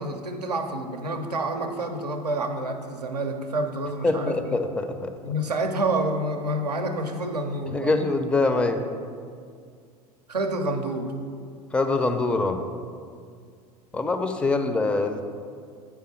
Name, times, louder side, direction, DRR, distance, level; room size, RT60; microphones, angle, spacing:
voice 1, 0.0-4.6 5.2-7.9 10.3-11.1, right 1 dB, 85° right, 5 dB, 0.6 m, -28 dB
voice 2, 4.0-5.1 7.7-8.9 11.7-12.6 13.9-15.2, left 3 dB, 5° left, 7 dB, 0.4 m, -24 dB
8.8 x 3.4 x 4.3 m, 2.2 s
figure-of-eight pair, 80°, 20 cm